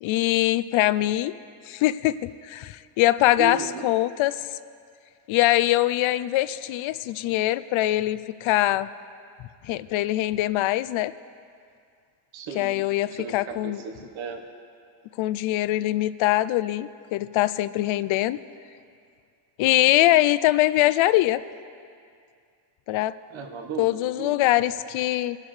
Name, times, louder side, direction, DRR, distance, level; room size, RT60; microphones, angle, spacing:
voice 1, 0.0-1.3 1.7-4.4 5.3-8.9 9.6-11.1 12.6-13.8 15.2-18.4 19.6-21.4 22.9-23.2 23.8-25.4, left 15 dB, 90° left, 16 dB, 0.6 m, -23 dB
voice 2, 3.4-3.9 12.3-14.4 23.3-24.5, right 3 dB, 80° right, 4 dB, 1.4 m, -35 dB
24.5 x 12.0 x 3.3 m, 2.3 s
cardioid pair, 175°, 46 cm